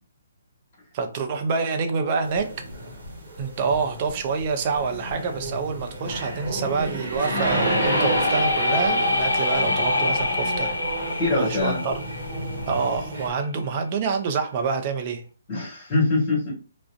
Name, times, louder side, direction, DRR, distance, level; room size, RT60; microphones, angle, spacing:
voice 1, 0.9-2.5 3.4-11.0 11.3-12.0 12.7-15.2, right 5 dB, 35° right, 5 dB, 0.5 m, -27 dB
sound 1, 2.2-13.3, right 1 dB, 55° right, 1.0 m, -31 dB
sound 2, 7.2-13.1, left 2 dB, 80° left, 0.5 m, -26 dB
voice 2, 11.2-11.9 15.5-16.5, left 2 dB, 35° left, -5 dB, 1.3 m, -23 dB
2.4 x 2.1 x 2.5 m, 0.36 s
figure-of-eight pair, 140°, 0 cm